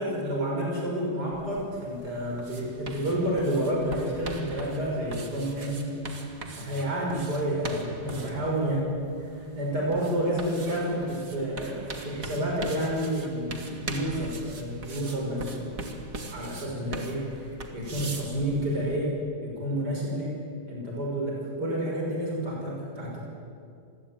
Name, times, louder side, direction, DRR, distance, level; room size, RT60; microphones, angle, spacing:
voice 1, 0.0-5.9 6.5-8.9 9.3-15.7 16.3-19.1 19.4-20.4 20.7-23.2, right 1 dB, 70° right, -2 dB, 6.6 m, -30 dB
sound 1, 1.3-19.0, right 3 dB, 55° right, 2.6 m, -41 dB
27.0 x 21.0 x 9.2 m, 2.4 s
omnidirectional pair, 1.8 m